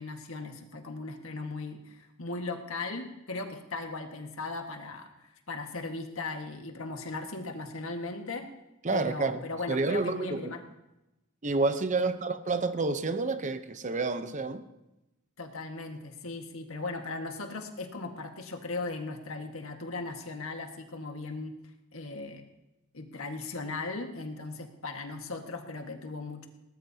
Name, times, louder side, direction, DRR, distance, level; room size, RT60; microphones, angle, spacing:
voice 1, 0.0-8.5 8.9-10.6 12.0-12.1 15.4-21.5 21.9-22.4 22.9-26.5, left 3 dB, 75° left, 1.7 m, -38 dB
voice 2, 8.8-9.4 9.7-10.5 11.4-14.6, right 3 dB, 35° right, 0.8 m, -29 dB
20.5 x 18.5 x 2.9 m
head